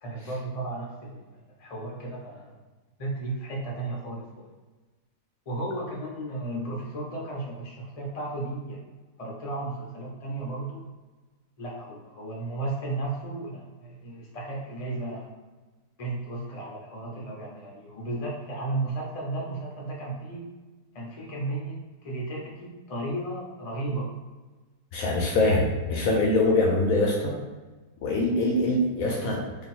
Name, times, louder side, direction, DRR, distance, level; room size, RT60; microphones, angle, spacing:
voice 1, 0.0-1.3 1.6-2.6 3.0-4.5 5.5-8.8 9.2-10.8 11.6-15.3 16.0-20.5 20.9-24.1, right 2 dB, 35° left, -3 dB, 0.6 m, -34 dB
voice 2, 24.9-27.4 28.0-29.4, left 2 dB, 65° left, -1 dB, 0.9 m, -23 dB
3.0 x 2.5 x 4.2 m, 1.2 s
omnidirectional pair, 1.7 m